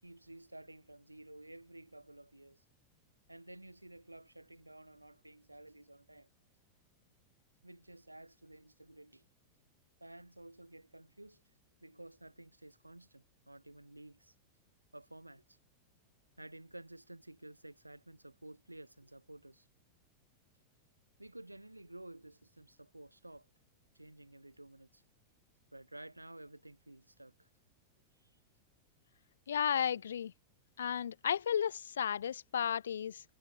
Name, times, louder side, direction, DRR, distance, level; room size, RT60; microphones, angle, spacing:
voice 1, 0.0-2.6 3.3-6.3 7.6-9.3 10.0-11.4 11.8-14.3 14.9-15.6 16.4-19.7 21.2-23.5 23.9-25.0 25.7-27.5 28.2-28.3, right 1 dB, 85° right, 6.6 m, -53 dB
voice 2, 29.5-30.3 30.8-33.2, left 8 dB, 65° left, 0.4 m, -33 dB
figure-of-eight pair, 90°, 0 cm